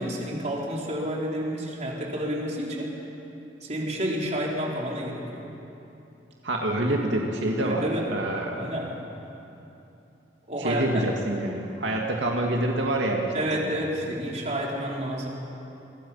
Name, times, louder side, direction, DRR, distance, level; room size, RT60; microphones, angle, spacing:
voice 1, 0.0-3.0 3.6-5.5 7.6-8.1 8.5-8.9 10.5-11.0 13.3-15.3, equal, 40° right, -2 dB, 4.0 m, -30 dB
voice 2, 6.4-8.7 10.6-13.8, right 1 dB, 85° right, 0 dB, 2.3 m, -27 dB
29.0 x 23.0 x 5.7 m, 2.9 s
head